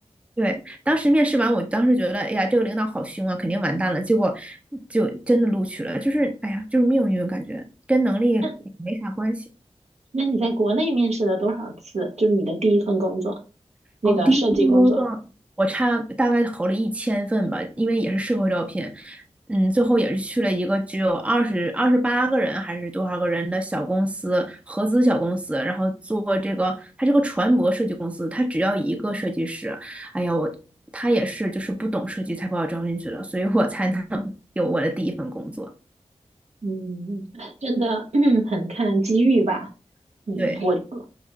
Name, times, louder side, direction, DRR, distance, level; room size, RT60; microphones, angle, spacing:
voice 1, 0.4-7.6 7.9-8.5 8.8-9.4 14.0-15.2 15.6-19.2 19.5-30.6 30.9-35.7 40.4-40.6, right 1 dB, 10° right, 6 dB, 0.5 m, -23 dB
voice 2, 10.1-13.4 14.0-15.0 36.6-39.7 40.3-41.0, right 2 dB, 70° right, 2 dB, 0.9 m, -23 dB
5.8 x 2.6 x 2.3 m, 0.33 s
wide cardioid pair, 60°, 12 cm